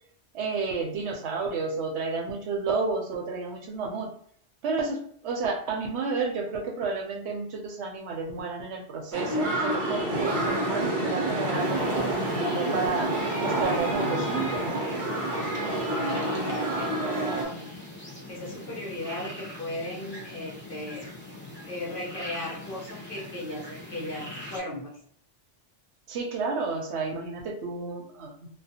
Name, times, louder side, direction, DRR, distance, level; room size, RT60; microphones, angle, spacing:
voice 1, 0.3-4.1 4.6-13.1 13.4-14.8 26.1-28.5, right 4 dB, 70° right, 2 dB, 0.8 m, -31 dB
sound 1, 9.1-17.5, right 1 dB, 35° right, 0.5 m, -28 dB
sound 2, 11.6-24.6, left 1 dB, 10° left, 0.6 m, -43 dB
voice 2, 15.3-17.7 18.3-21.1 21.6-25.0, left 1 dB, 50° left, -5 dB, 0.9 m, -36 dB
2.4 x 2.2 x 2.7 m, 0.63 s
omnidirectional pair, 1.2 m